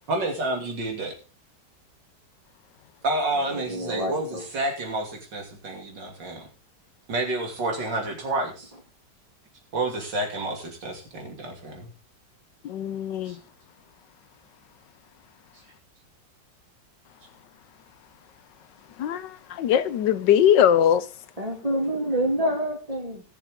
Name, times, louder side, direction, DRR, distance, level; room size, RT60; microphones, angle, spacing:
voice 1, 0.1-1.2 3.0-6.5 7.1-8.7 9.7-11.9 13.3-13.4, right 2 dB, 85° right, 3.5 m, -29 dB
voice 2, 3.5-4.4 21.4-23.4, right 1 dB, 20° right, 3.2 m, -27 dB
voice 3, 12.6-13.4 19.0-19.3 19.6-21.0, left 9 dB, 80° left, 1.5 m, -20 dB
19.0 x 6.9 x 3.7 m
omnidirectional pair, 1.9 m